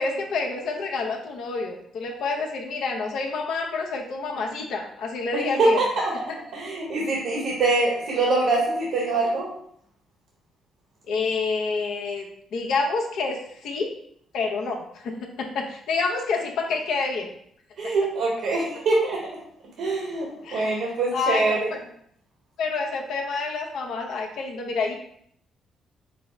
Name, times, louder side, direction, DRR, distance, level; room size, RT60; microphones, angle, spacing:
voice 1, 0.0-5.8 11.1-13.9 14.3-17.3 17.8-17.9 20.4-21.8 22.6-24.9, left 4 dB, 80° left, 1 dB, 0.8 m, -28 dB
voice 2, 5.3-6.1 6.5-9.5 17.8-19.3 19.8-21.7, right 2 dB, 80° right, -3 dB, 1.2 m, -24 dB
5.2 x 2.0 x 4.4 m, 0.67 s
cardioid pair, 90°, 0 cm